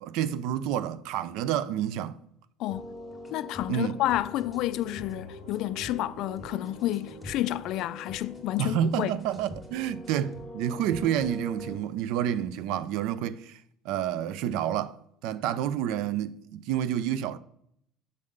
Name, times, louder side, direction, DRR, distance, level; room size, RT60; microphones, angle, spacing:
voice 1, 0.0-2.2 3.7-3.9 8.6-13.6 13.8-15.0 15.2-17.4, right 10 dB, 75° right, 0.4 m, -29 dB
sound 1, 2.7-11.7, left 1 dB, 5° left, 1.7 m, -44 dB
voice 2, 3.3-9.2, left 14 dB, 65° left, 0.3 m, -30 dB
sound 2, 3.7-9.4, left 1 dB, 90° right, 1.7 m, -49 dB
6.6 x 3.6 x 6.3 m
cardioid pair, 125°, 0 cm